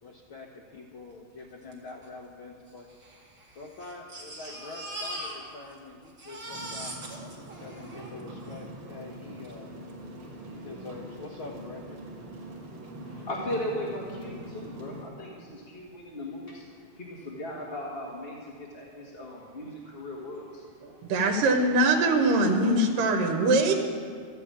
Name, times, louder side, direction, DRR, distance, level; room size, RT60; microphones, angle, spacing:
voice 1, 0.0-2.9 3.5-7.0 7.6-9.8 10.4-12.0, left 3 dB, 80° left, -1 dB, 1.1 m, -45 dB
Crying sobbing, 1.7-1.8 2.0-2.1 2.9-5.8 6.0-8.6 9.4-9.5 9.9-10.0, right 1 dB, 30° right, 2.0 m, -41 dB
sound 1, 6.5-15.0, right 1 dB, 55° right, 3.1 m, -43 dB
voice 2, 13.0-16.6 17.0-20.6, left 1 dB, 35° left, -3 dB, 1.0 m, -37 dB
voice 3, 20.8-23.7, right 2 dB, 80° right, 3 dB, 2.7 m, -23 dB
13.5 x 7.9 x 8.8 m, 2.1 s
omnidirectional pair, 3.8 m